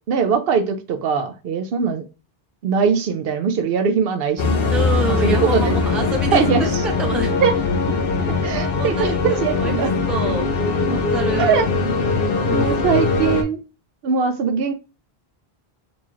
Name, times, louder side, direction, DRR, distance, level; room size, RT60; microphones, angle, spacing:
voice 1, 0.1-2.0 2.6-4.8 5.1-5.8 6.3-6.8 7.4-7.5 8.3-9.9 11.4-11.6 12.5-13.6 14.0-14.7, right 6 dB, 70° right, 9 dB, 0.7 m, -21 dB
sound 1, 4.4-13.4, left 4 dB, 70° left, 0.8 m, -21 dB
voice 2, 4.7-7.3 8.7-9.8 10.1-10.5 10.9-11.6 12.5-13.1, right 2 dB, ahead, 2 dB, 0.5 m, -27 dB
4.0 x 2.3 x 3.1 m, 0.30 s
omnidirectional pair, 1.0 m